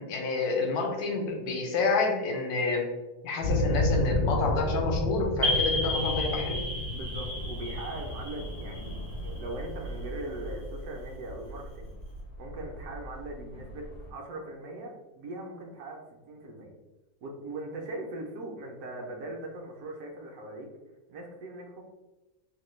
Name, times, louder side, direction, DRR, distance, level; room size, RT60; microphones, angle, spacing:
voice 1, 0.0-2.9 3.2-6.6, left 3 dB, 80° left, 2 dB, 1.1 m, -28 dB
sound 1, 3.4-14.1, left 1 dB, 65° left, 0.9 m, -33 dB
sound 2, 5.4-9.9, left 2 dB, 45° right, 0.5 m, -33 dB
voice 2, 6.9-8.9 9.2-11.9 12.4-16.7 17.2-20.7 21.1-21.9, right 2 dB, 75° right, 1 dB, 1.0 m, -40 dB
2.9 x 2.1 x 3.1 m, 1.1 s
omnidirectional pair, 1.7 m